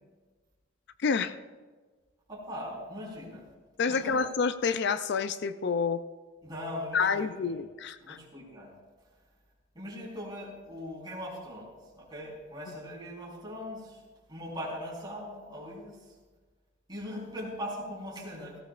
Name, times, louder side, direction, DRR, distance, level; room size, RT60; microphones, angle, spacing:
voice 1, 1.0-1.4 3.8-6.0 6.9-8.2, left 5 dB, 60° left, 12 dB, 0.4 m, -28 dB
voice 2, 2.3-3.5 3.9-4.2 6.4-7.6 8.0-8.7 9.7-16.1 16.9-18.6, equal, 25° right, -4 dB, 4.1 m, -40 dB
17.0 x 16.5 x 2.5 m, 1.4 s
head